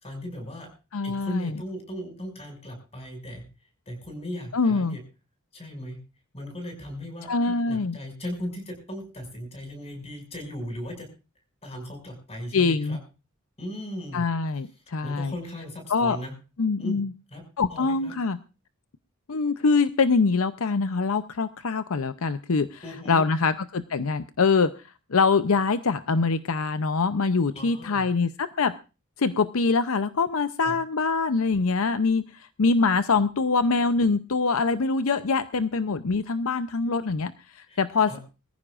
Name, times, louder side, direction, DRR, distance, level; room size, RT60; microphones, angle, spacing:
voice 1, 0.0-0.7 1.0-3.5 3.9-5.0 5.5-6.0 6.3-11.1 11.6-13.0 13.6-14.3 15.0-16.3 16.8-17.0 17.3-17.4 17.7-18.1 22.8-23.2 27.5-28.0 30.6-30.8 37.7-37.8 38.1-38.2, left 1 dB, 30° left, 3 dB, 6.1 m, -37 dB
voice 2, 0.9-1.6 4.5-5.0 7.3-8.0 12.5-13.0 14.1-15.3 15.9-16.2 16.6-17.1 17.6-18.4 19.3-22.8 23.1-24.7 25.1-28.7 29.2-38.1, left 4 dB, 65° left, 12 dB, 0.6 m, -24 dB
23.0 x 14.5 x 2.5 m, 0.32 s
head